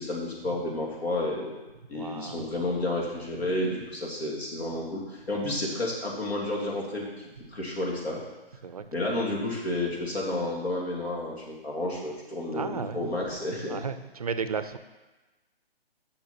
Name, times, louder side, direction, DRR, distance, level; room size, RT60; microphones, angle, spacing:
voice 1, 0.0-1.6 1.9-8.2 8.9-13.8, left 1 dB, 80° left, -2 dB, 2.8 m, -31 dB
voice 2, 1.9-2.5 5.5-5.6 8.6-9.3 12.5-13.3 13.7-14.8, right 5 dB, 40° right, 11 dB, 0.4 m, -35 dB
6.3 x 6.1 x 5.8 m, 1.1 s
hypercardioid pair, 160°, 31 cm